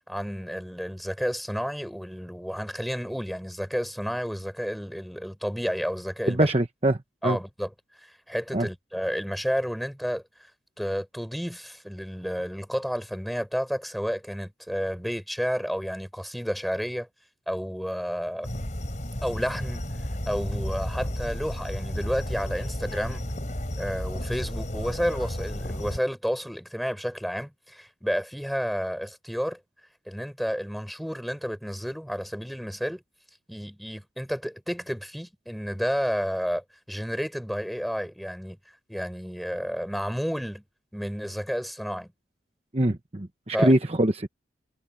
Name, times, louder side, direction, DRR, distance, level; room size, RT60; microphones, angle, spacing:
voice 1, 0.1-6.5 7.2-7.7 8.0-10.2 10.8-17.1 17.5-18.5 19.2-19.8 20.3-23.2 23.8-29.6 30.1-33.0 33.5-38.6 38.9-40.6 40.9-42.1 43.5-43.7, equal, ahead, 6.1 m, -31 dB
voice 2, 6.3-7.0 7.2-7.4 8.5-8.7 42.7-44.3, right 1 dB, 35° right, 1.0 m, -23 dB
sound 1, 18.4-26.0, equal, 40° left, 4.5 m, -32 dB
head